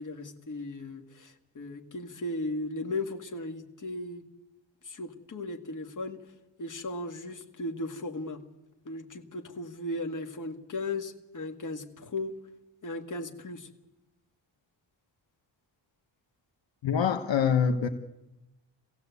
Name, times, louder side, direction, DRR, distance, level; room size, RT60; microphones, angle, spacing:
voice 1, 0.0-4.2 4.8-6.2 6.6-8.4 8.9-12.4 12.8-13.7, left 2 dB, 40° left, 4 dB, 2.0 m, -36 dB
voice 2, 16.8-17.9, left 7 dB, 70° left, 6 dB, 1.3 m, -25 dB
23.5 x 16.0 x 8.3 m, 0.99 s
wide cardioid pair, 125°, 46 cm